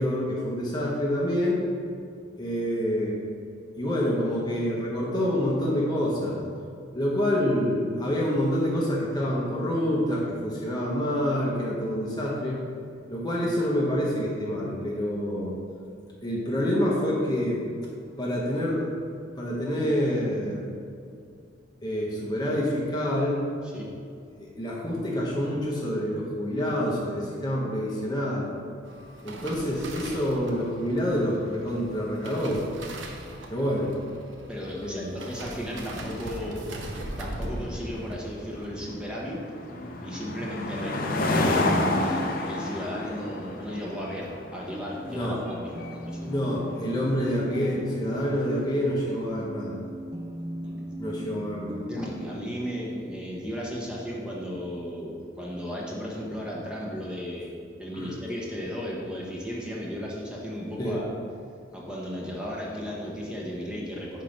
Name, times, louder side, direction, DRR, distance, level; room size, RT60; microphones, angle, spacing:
voice 1, 0.0-1.6 2.4-3.2 3.8-6.4 6.9-12.6 13.1-15.5 16.2-17.6 18.2-18.9 19.4-20.7 21.8-23.4 24.4-28.5 29.2-32.6 33.5-33.9 34.8-35.1 45.1-45.4 46.3-49.8 51.0-51.9 57.9-58.1 60.8-61.0, equal, 20° left, -4 dB, 0.8 m, -27 dB
sound 1, 28.8-40.3 40.5-40.9 41.2-41.6 41.9-42.0, right 1 dB, 80° right, 0.8 m, -41 dB
voice 2, 34.5-36.6 37.2-39.4 40.0-46.3 50.6-50.9 51.8-57.5 57.8-61.1 61.7-64.2, equal, 5° right, -5 dB, 1.0 m, -35 dB
sound 2, 35.6-49.2, left 2 dB, 50° left, 0.7 m, -31 dB
sound 3, 41.6-52.3, equal, 20° right, 0.5 m, -40 dB
5.7 x 4.5 x 5.1 m, 2.4 s
head